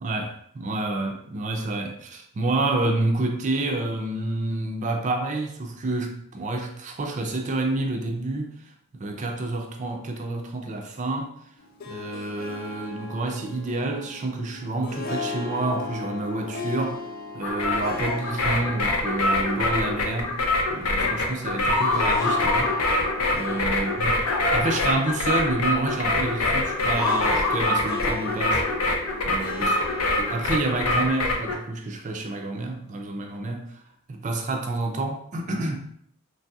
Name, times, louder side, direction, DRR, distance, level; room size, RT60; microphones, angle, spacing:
voice 1, 0.0-11.3 11.9-17.0 17.3-20.4 20.7-22.8 23.3-28.9 29.3-29.7 30.2-33.8 34.1-35.8, right 2 dB, 35° right, 0.4 m, -29 dB
Harp, 11.6-31.4, left 3 dB, 40° left, 0.3 m, -37 dB
sound 1, 17.4-31.5, left 2 dB, 85° left, 0.6 m, -25 dB
3.2 x 2.6 x 2.3 m
head